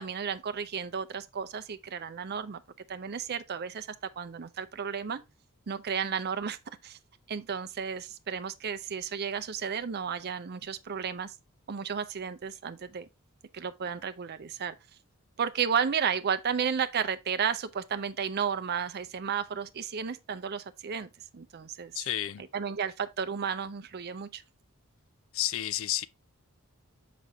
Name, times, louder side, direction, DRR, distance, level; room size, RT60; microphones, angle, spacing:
voice 1, 0.0-2.6 2.9-3.9 4.2-5.2 5.7-7.0 7.3-11.3 11.7-13.1 13.5-14.8 15.4-21.9 22.5-24.4, right 7 dB, 45° right, 0.5 m, -33 dB
voice 2, 21.9-22.4 25.3-26.1, left 12 dB, 60° left, 0.4 m, -31 dB
5.8 x 5.1 x 3.4 m
head